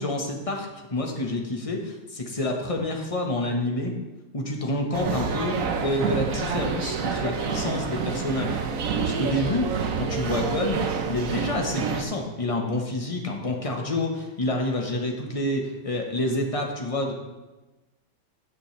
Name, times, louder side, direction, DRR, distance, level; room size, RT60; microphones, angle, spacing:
voice 1, 0.0-3.9 4.3-8.6 9.0-17.1, left 1 dB, 25° left, 1 dB, 0.8 m, -28 dB
sound 1, 4.9-12.0, right 5 dB, 60° right, 0.9 m, -28 dB
17.0 x 6.2 x 3.3 m, 1.1 s
omnidirectional pair, 2.4 m